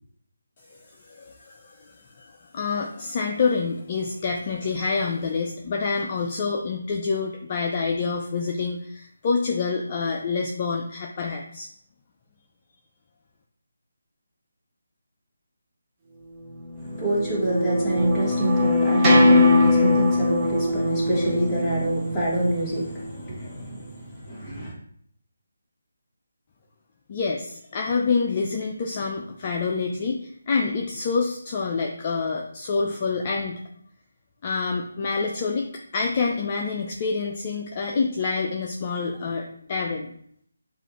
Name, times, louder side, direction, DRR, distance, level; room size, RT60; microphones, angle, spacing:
voice 1, 0.7-11.7 27.1-33.6 34.4-40.1, left 4 dB, 35° left, 1 dB, 0.5 m, -27 dB
sound 1, 16.5-23.0, left 2 dB, 15° right, 0.9 m, -21 dB
voice 2, 16.8-24.7, right 1 dB, 10° left, -9 dB, 1.8 m, -26 dB
6.8 x 2.5 x 3.1 m, 0.65 s
figure-of-eight pair, 155°, 0 cm